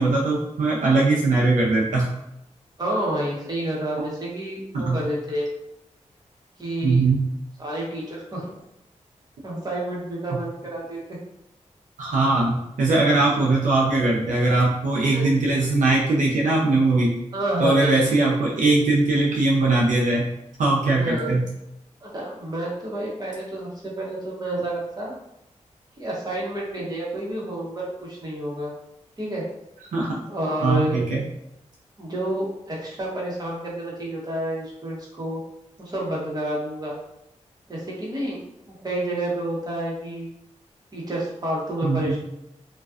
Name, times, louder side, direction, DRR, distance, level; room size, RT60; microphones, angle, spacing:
voice 1, 0.0-2.1 4.7-5.0 6.8-7.2 10.3-10.4 12.0-17.1 17.6-20.2 20.6-21.5 29.9-30.2 30.6-31.2 41.8-42.2, right 2 dB, 85° right, -4 dB, 0.5 m, -20 dB
voice 2, 2.8-5.5 6.6-7.0 7.6-8.5 9.4-11.0 15.0-15.3 17.3-17.9 21.0-21.4 22.0-25.1 26.0-28.7 29.2-29.4 30.3-31.0 32.0-35.4 35.8-36.9 37.7-38.4 38.7-40.3 40.9-42.2, right 1 dB, 30° right, -5 dB, 1.0 m, -29 dB
2.4 x 2.2 x 2.3 m, 0.84 s
cardioid pair, 50°, 13 cm